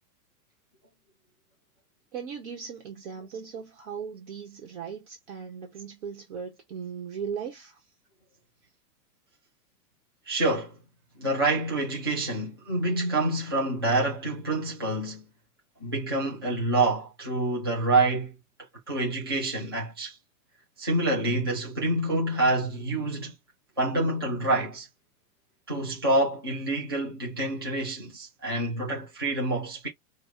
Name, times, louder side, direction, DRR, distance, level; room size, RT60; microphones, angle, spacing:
voice 1, 2.1-7.9 12.9-13.0, right 7 dB, 50° right, 1.3 m, -38 dB
voice 2, 10.3-10.8 11.2-15.2 15.8-18.3 18.9-20.1 20.8-23.3 23.8-24.9 25.7-29.9, right 2 dB, 20° right, 0.3 m, -27 dB
5.4 x 2.3 x 2.7 m
supercardioid pair, 170°, 46 cm